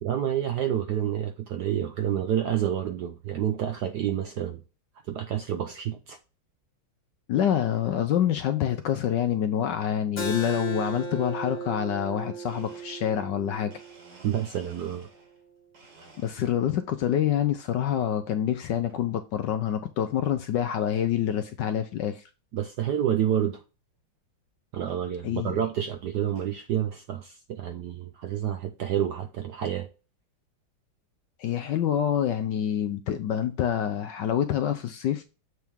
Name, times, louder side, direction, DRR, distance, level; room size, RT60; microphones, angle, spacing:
voice 1, 0.0-4.6 5.1-6.2 14.2-15.1 22.5-23.6 24.7-29.9, right 10 dB, 70° right, 1.0 m, -29 dB
voice 2, 7.3-13.7 16.2-22.2 25.2-25.6 31.4-35.2, left 10 dB, 70° left, 1.1 m, -27 dB
Keyboard (musical), 10.2-15.4, right 3 dB, 30° left, 0.9 m, -37 dB
Domestic sounds home sounds, 12.5-15.4 15.7-16.8 17.2-17.7 18.7-19.1 19.6-19.7 20.6-20.7 21.0-21.3 21.7-21.8 22.0-22.1 22.6-22.7 24.0-24.1 24.9-25.0 25.7-26.6, right 2 dB, 55° right, 2.7 m, -55 dB
7.8 x 3.6 x 4.5 m
omnidirectional pair, 2.4 m